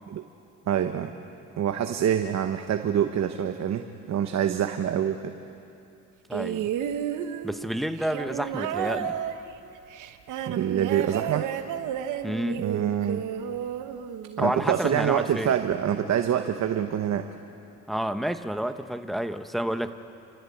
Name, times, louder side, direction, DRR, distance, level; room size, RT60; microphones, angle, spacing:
voice 1, 0.7-1.1 1.6-5.3 10.5-11.5 12.6-13.2 14.4-17.3, right 9 dB, 60° right, 7 dB, 1.0 m, -26 dB
voice 2, 6.3-6.7 7.4-9.2 12.2-12.6 14.4-15.5 17.9-19.9, right 1 dB, ahead, 9 dB, 0.9 m, -29 dB
sound 1, 6.3-14.7 15.7-15.8, right 9 dB, 85° right, 1.1 m, -32 dB
29.5 x 14.0 x 8.5 m, 2.7 s
cardioid pair, 90°, 30 cm